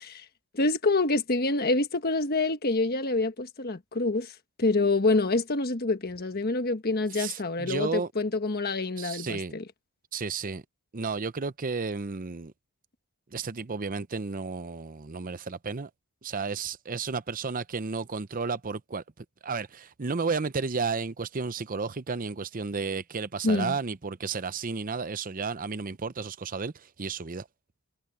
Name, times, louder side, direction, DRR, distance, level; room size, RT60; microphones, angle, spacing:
voice 1, 0.5-9.6 23.4-23.8, left 2 dB, 45° left, 1.4 m, -26 dB
voice 2, 7.1-8.1 9.0-9.5 10.1-10.6 10.9-12.5 13.3-15.9 16.2-27.5, right 4 dB, 40° right, 0.7 m, -32 dB
head